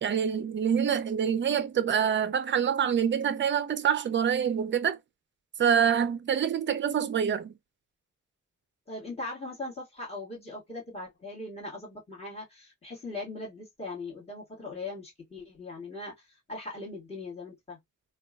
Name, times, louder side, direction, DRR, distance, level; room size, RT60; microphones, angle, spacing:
voice 1, 0.0-5.0 5.6-7.5, right 8 dB, 40° right, 0.5 m, -26 dB
voice 2, 8.9-17.8, left 2 dB, 20° left, 1.9 m, -40 dB
3.5 x 2.3 x 2.3 m
wide cardioid pair, 120°, 30 cm